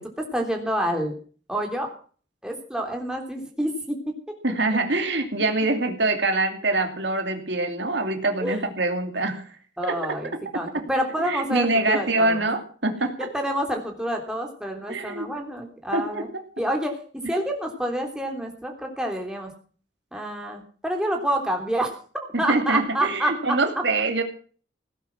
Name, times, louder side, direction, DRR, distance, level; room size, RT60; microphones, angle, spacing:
voice 1, 0.3-1.1 1.5-1.9 2.4-4.0 8.4-8.6 9.8-12.4 13.0-16.3 16.6-16.9 17.3-19.5 20.1-23.3, right 1 dB, 5° right, 2 dB, 3.3 m, -28 dB
voice 2, 4.4-9.5 9.8-10.2 10.5-10.8 11.2-13.3 14.9-15.3 15.9-16.4 17.2-17.3 22.3-24.2, right 2 dB, 75° right, 5 dB, 2.6 m, -25 dB
17.5 x 10.5 x 6.1 m, 0.43 s
head